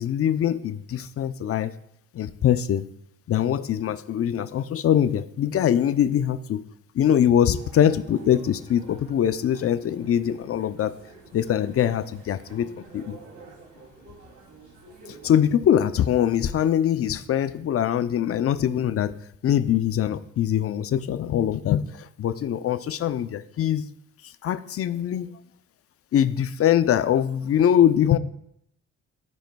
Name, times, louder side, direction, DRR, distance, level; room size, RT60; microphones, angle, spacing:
voice 1, 0.0-1.7 2.1-2.9 3.3-6.6 6.9-11.0 11.3-13.2 15.2-19.2 19.4-23.9 24.4-25.3 26.1-28.2, left 10 dB, 50° left, 13 dB, 0.5 m, -23 dB
sound 1, 7.5-15.4, right 3 dB, 70° right, 2.8 m, -48 dB
14.5 x 5.0 x 2.3 m, 0.74 s
cardioid pair, 90°, 30 cm